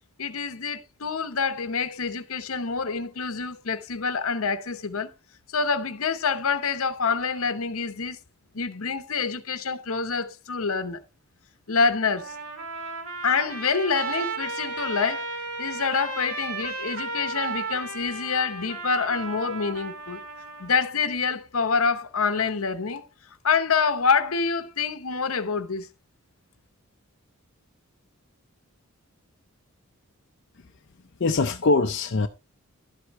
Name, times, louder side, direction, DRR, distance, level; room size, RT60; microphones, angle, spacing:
voice 1, 0.2-5.1 5.5-8.2 8.5-11.0 11.7-12.4 13.2-15.3 15.6-20.2 20.6-23.0 23.4-25.9, left 5 dB, 70° left, 0.9 m, -26 dB
Trumpet, 12.1-20.9, right 3 dB, 80° right, 2.0 m, -34 dB
voice 2, 31.2-32.3, left 3 dB, 50° left, 0.6 m, -22 dB
12.0 x 8.0 x 3.1 m
head